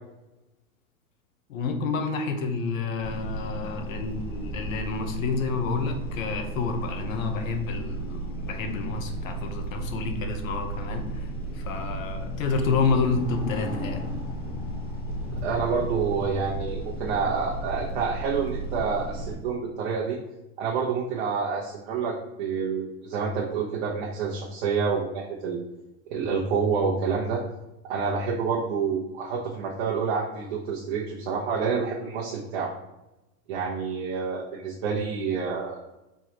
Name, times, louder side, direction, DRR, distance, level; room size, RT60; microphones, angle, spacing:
voice 1, 1.5-11.3 11.5-14.0, left 4 dB, 75° left, 6 dB, 0.9 m, -29 dB
sound 1, 3.0-19.4, right 1 dB, 40° left, 1.2 m, -34 dB
voice 2, 15.4-20.2 20.6-25.6 26.1-27.4 27.8-32.7 33.5-35.8, right 5 dB, 50° right, -3 dB, 0.8 m, -28 dB
4.5 x 3.2 x 2.9 m, 0.96 s
supercardioid pair, 160°, 41 cm